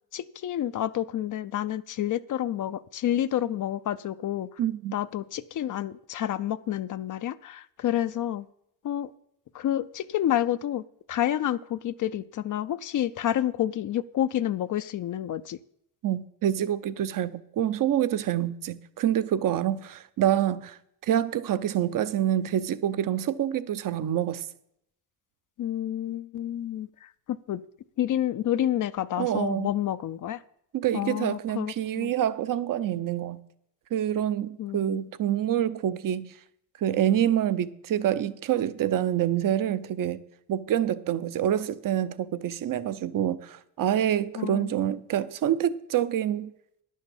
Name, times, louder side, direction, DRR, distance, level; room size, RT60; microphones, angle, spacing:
voice 1, 0.1-4.5 4.9-8.5 8.8-9.1 9.5-10.8 11.1-15.6 25.6-27.6 28.0-30.4 30.9-32.1 34.6-35.0 44.4-44.7, left 11 dB, 55° left, 0.5 m, -29 dB
voice 2, 4.6-5.0 16.0-24.5 29.2-29.7 30.7-33.4 33.9-36.3 36.8-40.2 40.5-46.5, right 11 dB, 55° right, 0.8 m, -27 dB
10.5 x 6.5 x 7.1 m
cardioid pair, 90°, 38 cm